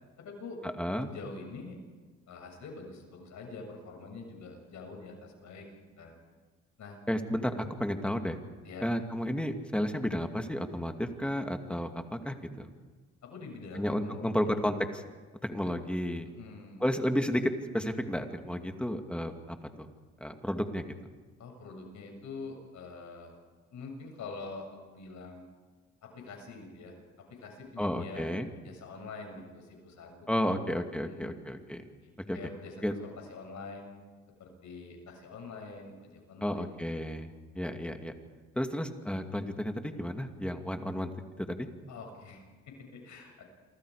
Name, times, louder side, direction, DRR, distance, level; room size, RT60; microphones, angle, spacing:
voice 1, 0.2-0.6 1.1-1.8 2.3-5.7 6.0-6.2 6.8-7.0 8.6-8.9 13.2-14.7 16.2-16.8 21.4-23.3 23.7-25.4 26.0-28.3 28.6-30.6 31.0-31.4 32.0-33.9 34.4-37.3 41.9-43.4, left 4 dB, 70° left, 3 dB, 7.3 m, -45 dB
voice 2, 0.8-1.1 7.1-8.4 8.8-12.7 13.8-15.0 15.4-16.3 16.8-19.9 20.2-20.9 27.8-28.5 30.3-31.9 32.3-32.4 32.8-32.9 36.4-37.3 37.5-38.1 38.6-41.1 41.4-41.7, equal, 5° left, 5 dB, 2.4 m, -32 dB
28.5 x 24.0 x 5.0 m, 1.4 s
cardioid pair, 90°, 30 cm